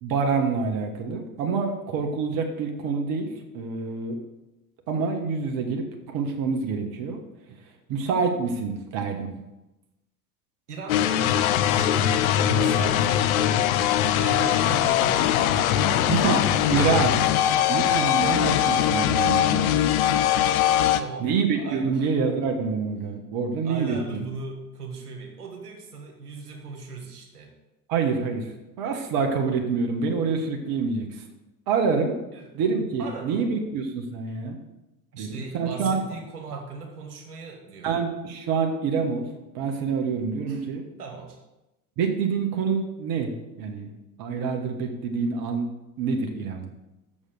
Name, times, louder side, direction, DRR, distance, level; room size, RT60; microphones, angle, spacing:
voice 1, 0.0-4.2 4.9-7.2 7.5-7.6 7.9-9.5 16.1-17.2 17.7-20.1 21.2-24.3 27.9-28.5 28.8-31.1 31.7-32.2 32.5-34.6 35.2-36.0 37.8-39.2 39.5-40.8 42.0-43.9 44.2-45.7 46.0-46.7, right 5 dB, 50° right, 3 dB, 1.5 m, -26 dB
voice 2, 10.7-13.3 14.2-16.0 17.1-17.7 21.0-22.1 23.6-27.5 32.3-32.5 33.0-33.5 35.1-38.0 40.5-40.6 41.0-41.4, right 4 dB, 85° right, 1 dB, 1.7 m, -38 dB
sound 1, 10.9-21.0, left 11 dB, 65° left, 0.7 m, -21 dB
7.1 x 6.7 x 6.6 m, 0.99 s
hypercardioid pair, 80°, 45 cm